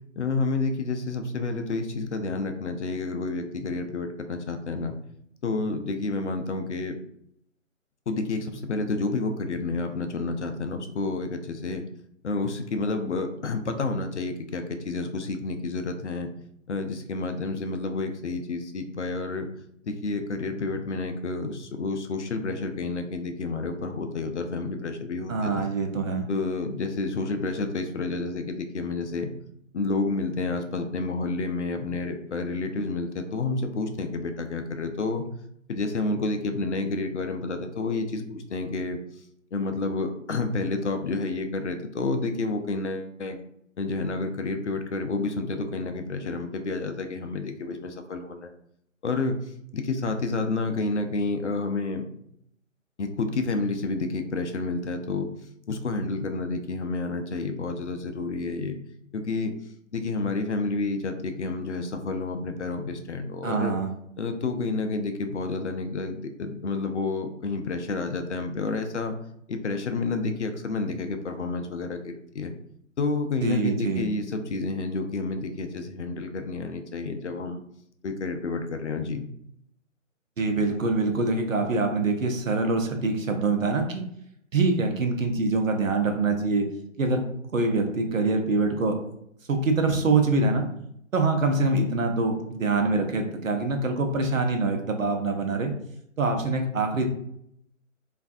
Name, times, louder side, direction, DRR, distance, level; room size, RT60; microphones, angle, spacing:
voice 1, 0.2-5.0 5.4-7.0 8.1-11.8 12.2-16.3 16.7-19.5 19.8-25.6 26.3-29.3 29.7-35.3 35.7-39.0 39.5-43.4 43.8-48.5 49.0-52.0 53.0-55.3 55.7-58.8 59.1-59.5 59.9-63.8 64.2-69.2 69.5-72.5 73.0-77.6 78.0-79.3, left 3 dB, 60° left, 6 dB, 0.5 m, -30 dB
voice 2, 25.3-26.3 63.4-63.9 73.4-74.1 80.4-84.0 84.5-86.6 87.0-87.2 87.5-89.0 89.5-90.6 91.1-95.7 96.2-97.0, right 3 dB, 75° right, 4 dB, 0.7 m, -24 dB
3.2 x 2.5 x 2.4 m, 0.73 s
figure-of-eight pair, 150°, 39 cm